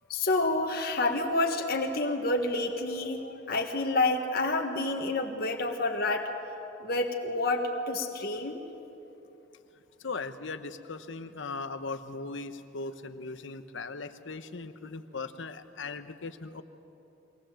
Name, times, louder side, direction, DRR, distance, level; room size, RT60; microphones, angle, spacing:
voice 1, 0.1-6.3 6.8-8.6, left 2 dB, 55° left, 3 dB, 1.5 m, -29 dB
voice 2, 10.0-16.6, left 3 dB, 70° left, 10 dB, 1.0 m, -38 dB
22.0 x 18.5 x 7.7 m, 3.0 s
head